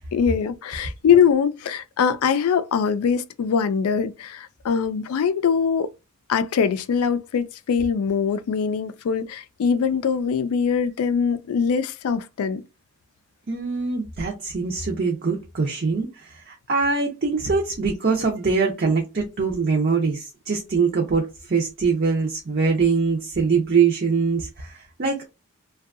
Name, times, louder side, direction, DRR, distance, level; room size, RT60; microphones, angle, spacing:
voice 1, 0.1-5.9 6.3-12.6, left 6 dB, 90° left, 0.3 m, -22 dB
voice 2, 13.5-25.3, right 5 dB, 45° right, 0.5 m, -23 dB
2.6 x 2.2 x 2.4 m
head